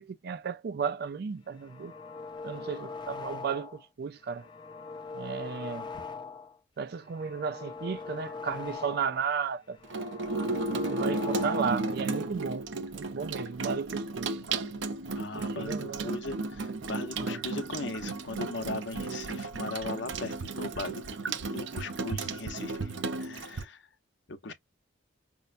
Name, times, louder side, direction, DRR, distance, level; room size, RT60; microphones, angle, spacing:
voice 1, 0.0-1.9 2.4-4.5 5.1-5.9 6.8-9.8 10.9-12.7 12.9-14.4 15.3-16.1 17.2-17.4, right 6 dB, 55° right, 0.4 m, -34 dB
sound 1, 1.5-3.8 4.2-6.6 6.9-9.3 9.6-12.0, left 4 dB, 25° left, 0.5 m, -42 dB
Water tap faucet / Sink (filling or washing), 9.8-23.6, right 3 dB, 80° right, 0.7 m, -34 dB
voice 2, 15.2-23.9 24.3-24.5, left 3 dB, 70° left, 0.8 m, -39 dB
5.4 x 2.1 x 2.4 m
head